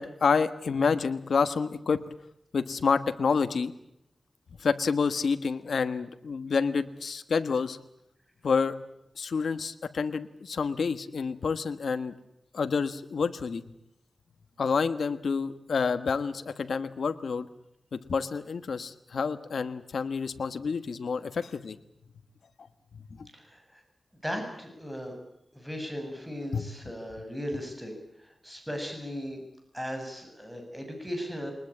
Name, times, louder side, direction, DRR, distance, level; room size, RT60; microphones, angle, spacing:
voice 1, 0.0-2.0 2.5-3.7 4.6-7.8 8.4-8.8 9.2-12.1 12.5-13.6 14.6-17.5 17.9-21.8 23.1-23.3 26.5-26.7, left 5 dB, 90° left, 10 dB, 1.3 m, -28 dB
voice 2, 23.3-23.8 24.2-25.2 25.5-27.9 28.2-29.4 29.7-31.5, equal, 5° right, 4 dB, 7.5 m, -37 dB
22.5 x 20.5 x 8.6 m, 0.78 s
wide cardioid pair, 85°, 0 cm